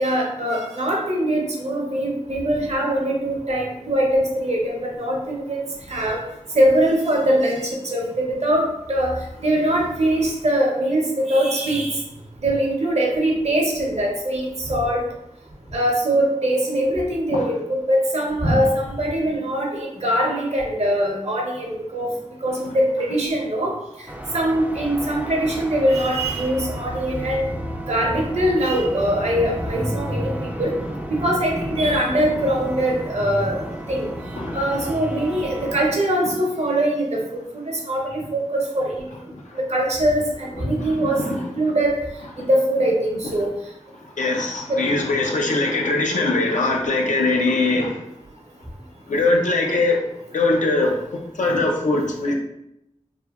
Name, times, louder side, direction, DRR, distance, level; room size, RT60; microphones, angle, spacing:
voice 1, 0.0-6.2 6.5-12.0 12.4-15.0 15.7-17.6 17.9-22.1 22.4-23.7 24.3-27.5 27.9-30.7 31.1-33.6 33.9-34.1 34.5-37.4 37.7-39.0 39.7-42.0 42.4-43.5 44.7-44.8, right 1 dB, 60° right, -1 dB, 0.7 m, -22 dB
sound 1, 24.1-35.9, equal, 10° right, 0.3 m, -32 dB
voice 2, 40.9-41.4 42.4-42.5 44.2-48.0 49.1-50.0 50.3-52.3, left 2 dB, 85° left, 0 dB, 0.5 m, -21 dB
3.1 x 2.2 x 2.3 m, 0.82 s
wide cardioid pair, 50°, 12 cm